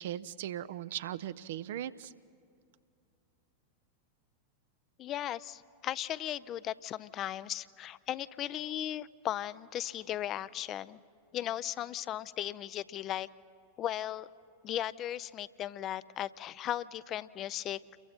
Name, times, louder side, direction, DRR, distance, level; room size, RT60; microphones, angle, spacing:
voice 1, 0.0-2.1, right 11 dB, 55° right, 15 dB, 0.5 m, -38 dB
voice 2, 5.0-11.0 11.3-13.3 13.8-14.3 14.6-17.8, left 12 dB, 30° left, 18 dB, 0.4 m, -37 dB
29.0 x 22.5 x 4.3 m, 2.4 s
figure-of-eight pair, 90°, 0 cm